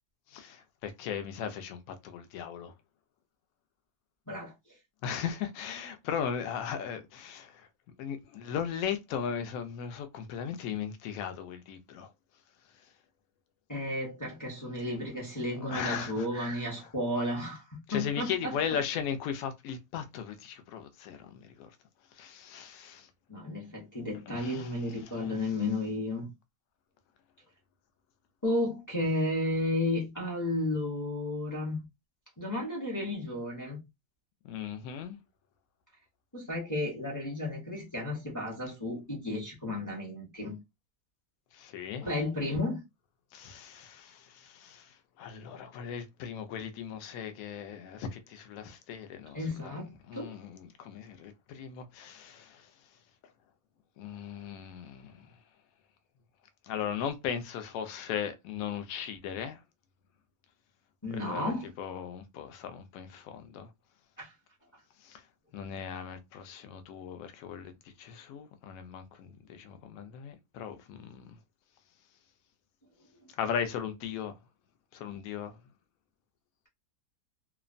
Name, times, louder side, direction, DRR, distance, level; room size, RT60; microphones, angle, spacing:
voice 1, 0.3-2.7 5.0-7.7 8.0-12.1 15.7-16.3 17.9-21.7 22.2-23.1 24.3-24.7 25.0-25.3 34.4-35.2 41.5-42.1 43.3-49.4 49.6-49.8 50.1-52.6 54.0-55.2 56.6-59.6 61.1-61.5 61.8-63.7 65.0-65.2 65.5-67.7 68.0-71.4 73.4-74.3 74.9-75.5, left 8 dB, 70° left, 0.9 m, -37 dB
voice 2, 4.3-4.8 13.7-18.8 23.3-26.3 28.4-31.8 32.4-33.8 36.3-40.6 42.0-42.8 49.3-50.4 61.0-61.7 64.2-64.3, left 1 dB, 25° left, 0.4 m, -33 dB
2.8 x 2.1 x 2.5 m
omnidirectional pair, 1.7 m